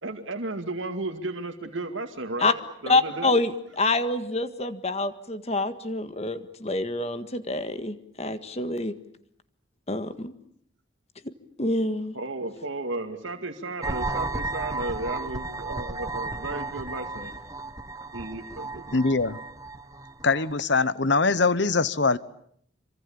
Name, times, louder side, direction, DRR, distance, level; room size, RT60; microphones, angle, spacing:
voice 1, 0.0-2.6 2.8-3.3 12.1-17.4 18.1-19.0, right 2 dB, 80° right, 2.2 m, -34 dB
voice 2, 2.9-8.9 9.9-10.3 11.6-12.2, left 2 dB, 30° left, 1.7 m, -26 dB
sound 1, 13.8-20.5, right 2 dB, 15° right, 1.2 m, -34 dB
voice 3, 18.9-19.4 20.2-22.2, left 3 dB, 65° left, 1.1 m, -22 dB
27.0 x 25.0 x 8.7 m
head